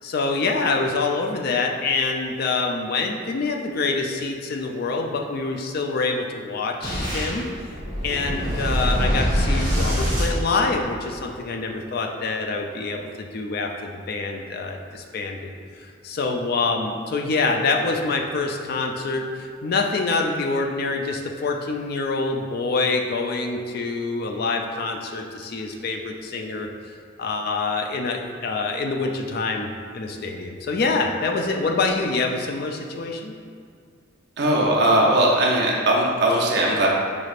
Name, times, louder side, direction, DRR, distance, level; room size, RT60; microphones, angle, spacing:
voice 1, 0.0-7.4 8.0-15.5 16.0-26.7 27.2-29.7 29.9-33.3, left 3 dB, 50° left, 2 dB, 0.4 m, -26 dB
Boom, 6.8-11.2, equal, 25° right, 1.3 m, -24 dB
voice 2, 34.4-36.9, right 1 dB, 55° right, -3 dB, 0.6 m, -19 dB
5.2 x 3.2 x 2.4 m, 2.3 s
head